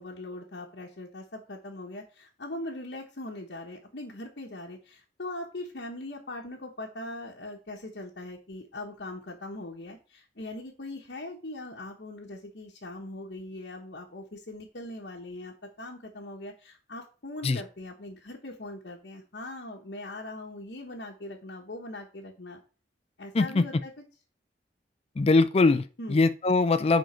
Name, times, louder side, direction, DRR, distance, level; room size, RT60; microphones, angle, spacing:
voice 1, 0.0-22.6 23.2-24.0 26.0-26.2, left 1 dB, 65° left, 1.2 m, -41 dB
voice 2, 25.2-25.8 26.1-27.0, left 3 dB, 35° left, 0.4 m, -22 dB
10.0 x 3.9 x 4.4 m
head